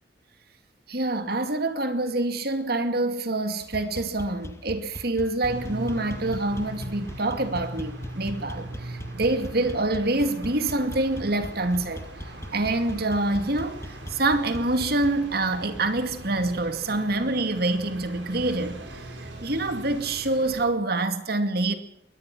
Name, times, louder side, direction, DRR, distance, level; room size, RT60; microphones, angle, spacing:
voice 1, 0.9-12.1 12.5-18.8 19.2-21.7, right 2 dB, 60° right, 2.4 m, -26 dB
sound 1, 3.6-15.3, equal, 15° left, 2.0 m, -40 dB
sound 2, 5.4-20.7, right 1 dB, 90° right, 5.5 m, -40 dB
22.5 x 19.0 x 6.1 m
head